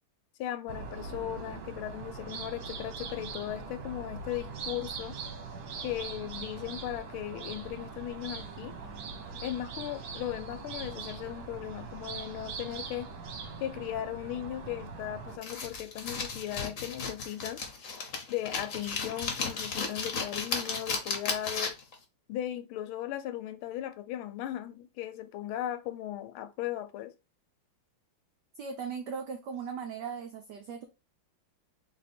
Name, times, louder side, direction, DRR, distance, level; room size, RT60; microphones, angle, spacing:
voice 1, 0.4-5.2 5.8-8.8 9.4-13.1 13.6-17.6 18.3-21.7 22.3-27.1, left 12 dB, 80° left, 1.4 m, -37 dB
sound 1, 0.7-15.4, right 4 dB, 55° right, 1.1 m, -41 dB
es-scissorscutting, 15.4-21.9, left 4 dB, 50° left, 0.9 m, -35 dB
voice 2, 28.6-30.8, right 6 dB, 85° right, 0.9 m, -38 dB
3.8 x 2.9 x 4.1 m
omnidirectional pair, 2.4 m